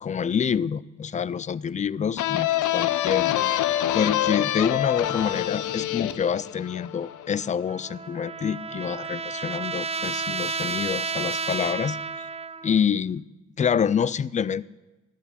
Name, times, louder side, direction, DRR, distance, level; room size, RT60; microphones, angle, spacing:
voice 1, 0.0-3.3 3.9-12.3 12.6-13.2 13.6-14.6, left 7 dB, 25° left, 0.4 m, -27 dB
sound 1, 2.2-7.6, left 13 dB, 80° left, 0.7 m, -26 dB
Trumpet, 7.7-12.8, right 5 dB, 20° right, 0.6 m, -31 dB
14.0 x 6.8 x 10.0 m
cardioid pair, 90°, 30 cm